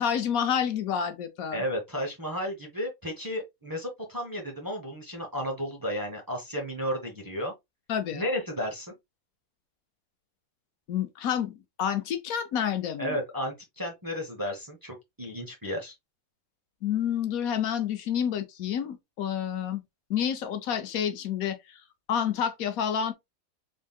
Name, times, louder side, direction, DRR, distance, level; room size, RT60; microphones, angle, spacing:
voice 1, 0.0-1.6 7.9-8.2 10.9-13.2 16.8-19.8 20.1-21.8 22.1-23.1, left 8 dB, 80° left, 1.1 m, -29 dB
voice 2, 1.5-7.5 8.1-8.9 13.0-15.9, equal, 20° right, 0.7 m, -33 dB
3.6 x 3.6 x 2.3 m
omnidirectional pair, 1.5 m